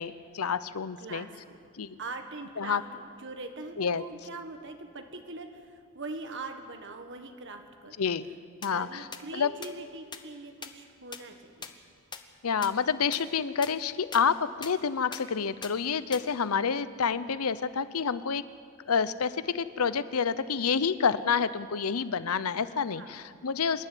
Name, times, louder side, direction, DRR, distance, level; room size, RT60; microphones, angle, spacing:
voice 1, 0.0-1.3 1.8-2.0 2.6-2.8 3.8-4.0 8.0-8.3 8.6-9.0 9.3-9.5 12.4-18.4 18.9-23.9, left 6 dB, 85° left, 15 dB, 0.7 m, -28 dB
voice 2, 1.0-1.7 2.0-8.0 8.7-11.8 22.9-23.1, right 3 dB, 55° right, 5 dB, 1.6 m, -42 dB
sound 1, 8.6-8.7 9.1-9.2 9.6-9.7 10.1-10.2 10.6-10.7 11.1-11.2 11.6-11.7 12.1-12.2 12.6-12.7 13.1-13.2 13.6-13.7 14.1-14.2 14.6-14.7 15.1-15.2 15.6-15.7 16.1-16.2, left 5 dB, 20° left, 1.0 m, -38 dB
26.5 x 11.5 x 9.2 m, 2.1 s
head